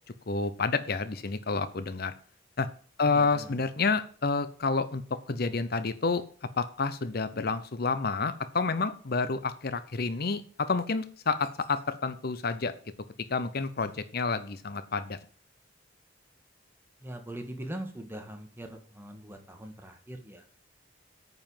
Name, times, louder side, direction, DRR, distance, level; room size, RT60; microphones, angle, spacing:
voice 1, 0.3-2.1 2.6-2.7 3.0-5.0 5.3-6.2 6.6-12.7 13.3-15.2, left 4 dB, 55° left, 12 dB, 0.7 m, -29 dB
voice 2, 3.0-3.6 17.0-20.4, right 1 dB, 10° right, 4 dB, 1.9 m, -41 dB
9.0 x 5.6 x 7.3 m, 0.44 s
head